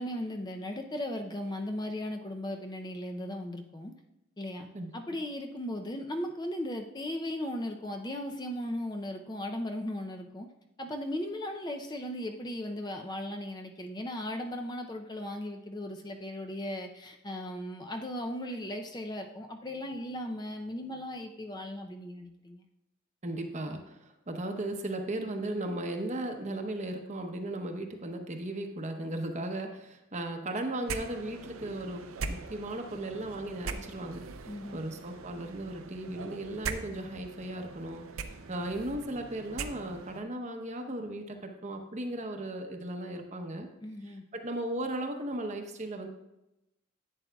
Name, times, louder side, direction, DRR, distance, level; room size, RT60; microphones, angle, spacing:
voice 1, 0.0-3.9 4.4-4.7 4.9-10.5 10.8-22.6 34.4-34.8 43.8-44.2, left 1 dB, 20° left, 4 dB, 0.5 m, -37 dB
voice 2, 4.7-5.2 23.2-34.2 34.7-38.1 38.5-43.7 44.3-46.1, right 1 dB, 35° right, 4 dB, 0.8 m, -36 dB
sound 1, 30.8-40.2, right 4 dB, 80° right, 0.6 m, -41 dB
11.0 x 8.6 x 2.3 m, 0.91 s
head